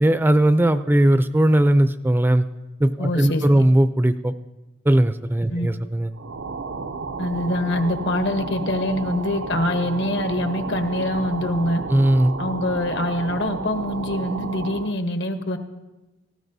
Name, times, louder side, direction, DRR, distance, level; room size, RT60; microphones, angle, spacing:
voice 1, 0.0-2.4 2.8-4.3 4.9-6.1 11.9-12.3, right 1 dB, 10° right, 11 dB, 0.4 m, -18 dB
voice 2, 3.0-3.6 5.5-5.7 7.2-11.8 12.4-15.6, left 1 dB, 70° left, 7 dB, 1.1 m, -24 dB
sound 1, 6.1-15.0, right 4 dB, 80° right, 0.6 m, -32 dB
18.5 x 15.0 x 2.7 m, 1.1 s
head